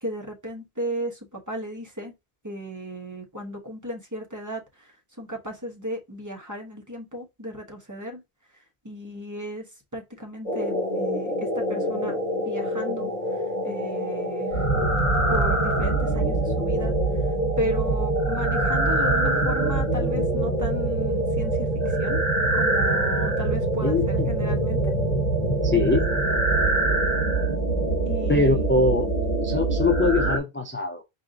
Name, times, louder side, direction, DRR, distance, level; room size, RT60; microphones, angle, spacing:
voice 1, 0.0-2.1 2.4-8.2 8.8-9.7 9.9-13.1 13.6-14.7 15.3-16.9 17.6-21.7 22.0-22.2 22.5-24.9 28.0-28.7, equal, 20° right, 1.1 m, -35 dB
sound 1, 10.5-30.4, right 2 dB, 40° left, 1.3 m, -24 dB
voice 2, 23.8-24.3 25.6-26.1 28.3-29.1 29.4-31.0, left 3 dB, 15° left, 0.4 m, -23 dB
4.7 x 2.7 x 3.6 m
omnidirectional pair, 1.0 m